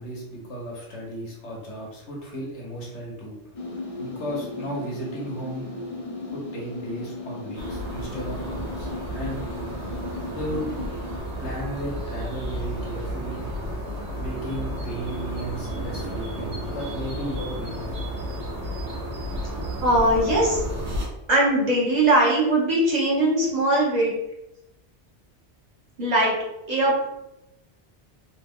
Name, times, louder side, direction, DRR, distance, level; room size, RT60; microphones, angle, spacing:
voice 1, 0.0-3.4 4.0-5.7 6.3-9.4 10.3-10.6 11.4-13.5 14.1-18.1, right 1 dB, 90° left, -2 dB, 1.2 m, -35 dB
sound 1, 3.5-11.2, left 3 dB, 45° left, 0.5 m, -36 dB
sound 2, 7.5-21.1, equal, 80° right, 1.2 m, -32 dB
voice 2, 19.8-20.6 21.3-24.1 26.0-26.4 26.7-27.0, right 1 dB, 40° right, -4 dB, 0.9 m, -20 dB
3.0 x 2.1 x 3.5 m, 0.89 s
omnidirectional pair, 1.2 m